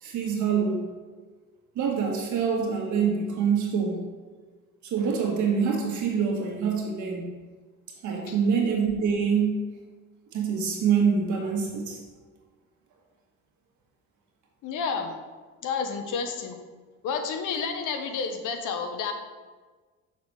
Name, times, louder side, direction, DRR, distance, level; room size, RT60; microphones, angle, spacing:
voice 1, 0.0-0.8 1.7-4.0 4.8-7.3 8.0-9.6 10.3-12.0, right 6 dB, 75° right, 0 dB, 1.6 m, -25 dB
voice 2, 14.6-15.1 15.6-16.6 17.0-19.1, left 5 dB, 85° left, 5 dB, 0.9 m, -30 dB
5.9 x 4.1 x 6.2 m, 1.4 s
cardioid pair, 90°, 30 cm